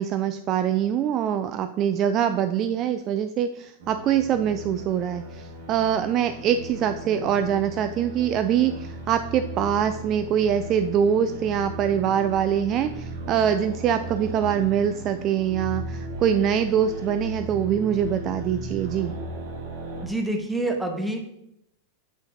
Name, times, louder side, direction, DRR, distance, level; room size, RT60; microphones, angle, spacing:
voice 1, 0.0-19.1, right 9 dB, 35° right, 9 dB, 0.3 m, -24 dB
sound 1, 3.8-20.1, right 1 dB, 55° right, 1.3 m, -36 dB
voice 2, 20.0-21.2, right 2 dB, 5° right, 3 dB, 1.0 m, -27 dB
8.4 x 5.5 x 2.7 m, 0.80 s
figure-of-eight pair, 90°, 0 cm